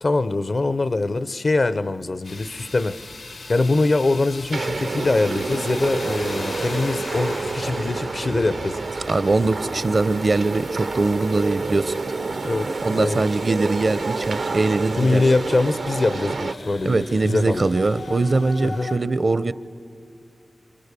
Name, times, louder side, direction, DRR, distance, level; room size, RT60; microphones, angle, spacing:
voice 1, 0.0-3.0 3.5-8.8 12.4-13.2 15.0-17.7 18.6-18.9, left 2 dB, 60° left, 14 dB, 0.7 m, -23 dB
sound 1, 2.2-19.0, left 2 dB, 90° left, 2.1 m, -39 dB
sound 2, 4.5-16.5, right 3 dB, 90° right, 0.9 m, -28 dB
voice 2, 9.1-11.9 12.8-15.2 16.8-19.5, right 3 dB, 55° right, 15 dB, 0.7 m, -22 dB
30.0 x 28.5 x 6.9 m, 2.5 s
wide cardioid pair, 65°, 0 cm